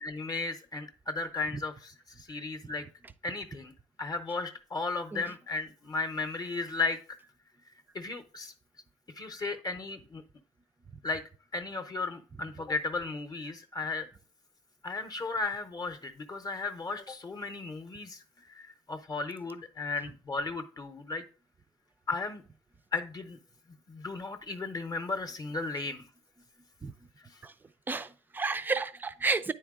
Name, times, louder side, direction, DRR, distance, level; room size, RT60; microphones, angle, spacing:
voice 1, 0.0-2.8 3.2-3.7 4.0-7.2 7.9-8.5 9.2-10.2 11.0-11.2 11.5-14.1 14.8-21.2 22.1-22.4 22.9-23.4 23.9-26.1, left 3 dB, 30° left, 0.7 m, -35 dB
voice 2, 27.9-29.5, right 4 dB, 15° right, 0.4 m, -31 dB
9.4 x 4.5 x 3.6 m
cardioid pair, 145°, 13 cm